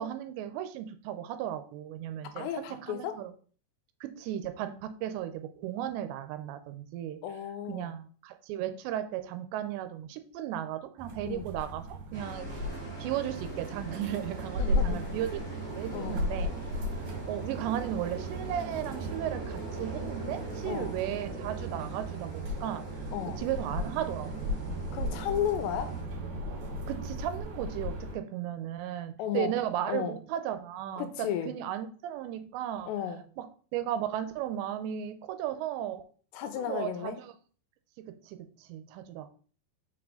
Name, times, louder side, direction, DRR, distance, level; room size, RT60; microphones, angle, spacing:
voice 1, 0.0-3.3 4.0-7.2 7.7-12.7 13.0-15.4 15.8-16.5 17.3-22.8 23.4-24.5 26.9-32.9 33.4-36.0 36.6-37.1 38.0-39.3, right 11 dB, 85° right, 9 dB, 2.9 m, -35 dB
voice 2, 2.4-3.2 7.2-7.9 11.2-11.5 14.6-15.0 15.9-16.2 20.7-21.0 23.1-23.4 24.9-26.0 29.2-29.6 29.9-30.2 31.0-31.5 32.9-33.2 36.3-37.2, left 9 dB, 85° left, 8 dB, 2.9 m, -34 dB
sound 1, 11.0-28.1, equal, 55° right, 2.8 m, -36 dB
sound 2, 12.1-26.0, equal, 30° right, 0.8 m, -46 dB
6.3 x 4.8 x 3.8 m, 0.43 s
omnidirectional pair, 5.0 m